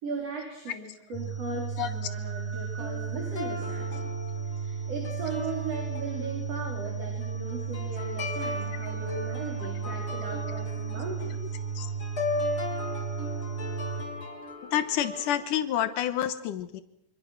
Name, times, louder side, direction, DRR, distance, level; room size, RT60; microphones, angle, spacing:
voice 1, 0.0-4.2 4.4-11.4, right 3 dB, 50° right, 0 dB, 5.5 m, -38 dB
sound 1, 1.1-14.0, right 6 dB, 75° right, 5.9 m, -34 dB
sound 2, 2.8-15.4, left 3 dB, 40° left, 4.4 m, -38 dB
voice 2, 14.7-16.8, left 11 dB, 85° left, 10 dB, 2.7 m, -28 dB
26.5 x 26.0 x 6.1 m, 0.78 s
omnidirectional pair, 3.6 m